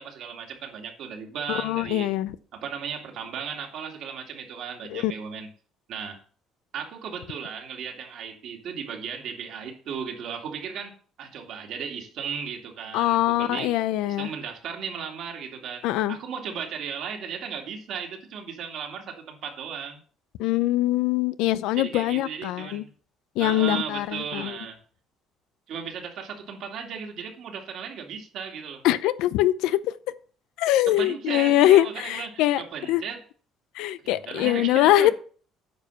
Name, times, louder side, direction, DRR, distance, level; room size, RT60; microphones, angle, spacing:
voice 1, 0.0-2.1 2.5-5.5 5.9-6.2 6.7-10.9 11.2-13.7 14.1-20.0 21.8-22.9 23.4-24.8 25.7-28.8 30.9-33.2 34.0-35.1, right 7 dB, 50° right, 2.4 m, -36 dB
voice 2, 1.5-2.4 4.9-5.1 12.9-14.3 15.8-16.2 20.4-22.8 23.4-24.6 28.8-29.9 30.6-32.6 32.9-33.0 33.7-35.1, left 14 dB, 85° left, 0.6 m, -23 dB
9.2 x 5.0 x 6.9 m
cardioid pair, 165°, 0 cm